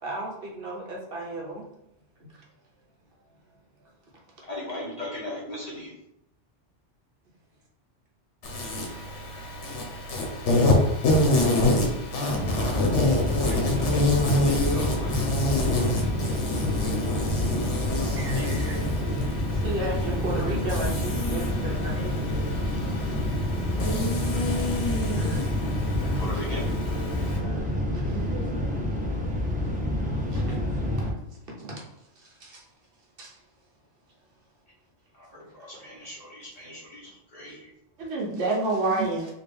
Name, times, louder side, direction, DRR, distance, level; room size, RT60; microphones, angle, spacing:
voice 1, 0.0-1.7 2.3-2.4 4.7-5.2 14.6-14.7 16.4-22.3 22.6-23.2 23.7-23.8 24.3-24.5 25.2-25.4 26.1-26.5 27.3-28.4 30.3-30.6 31.0-32.7 33.2-33.4 35.5-36.1 39.0-39.1, right 2 dB, 55° right, -2 dB, 1.0 m, -38 dB
voice 2, 4.5-5.9 13.4-15.2 17.9-18.5 26.2-26.6 35.1-37.6, left 1 dB, 35° left, -5 dB, 1.1 m, -39 dB
Insect, 8.4-27.4, left 1 dB, 80° left, 1.2 m, -27 dB
sound 1, 12.3-31.1, left 1 dB, 10° right, 0.5 m, -28 dB
voice 3, 28.1-28.7 38.0-39.2, right 2 dB, 85° right, -3 dB, 1.3 m, -28 dB
3.8 x 2.4 x 3.4 m, 0.83 s
omnidirectional pair, 1.2 m